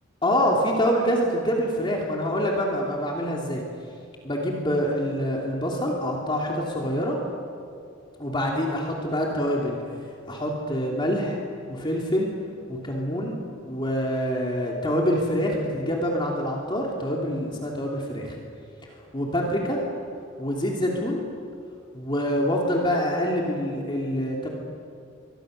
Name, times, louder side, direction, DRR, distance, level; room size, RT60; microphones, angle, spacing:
voice 1, 0.2-3.6 4.2-7.2 8.2-9.8 10.3-11.4 11.7-12.3 12.7-13.4 13.6-18.4 19.1-19.8 20.4-21.2 21.9-24.5, equal, 25° left, -2 dB, 3.0 m, -26 dB
28.0 x 24.0 x 6.7 m, 2.5 s
head